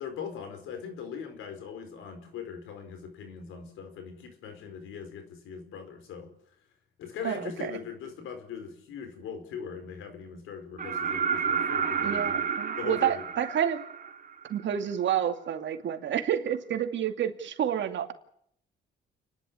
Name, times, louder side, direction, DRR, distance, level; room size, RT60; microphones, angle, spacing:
voice 1, 0.0-6.3 7.0-12.5 12.8-13.2, left 6 dB, 90° left, 7 dB, 4.8 m, -40 dB
voice 2, 7.2-7.7 12.0-13.8 14.5-18.1, right 9 dB, 70° right, 6 dB, 2.4 m, -29 dB
sound 1, 10.8-14.6 16.5-16.6, right 6 dB, 45° right, 2.6 m, -30 dB
29.0 x 11.0 x 9.7 m, 0.69 s
cardioid pair, 90°, 20 cm